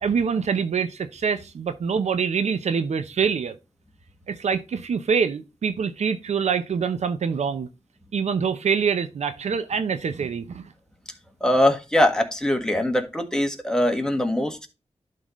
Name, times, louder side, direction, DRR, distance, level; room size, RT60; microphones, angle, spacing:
voice 1, 0.0-3.5 4.3-7.7 8.1-10.6, right 6 dB, 85° right, 0.7 m, -25 dB
voice 2, 11.4-14.7, left 1 dB, 5° left, 1.6 m, -22 dB
11.5 x 3.9 x 3.1 m
cardioid pair, 55°, 11 cm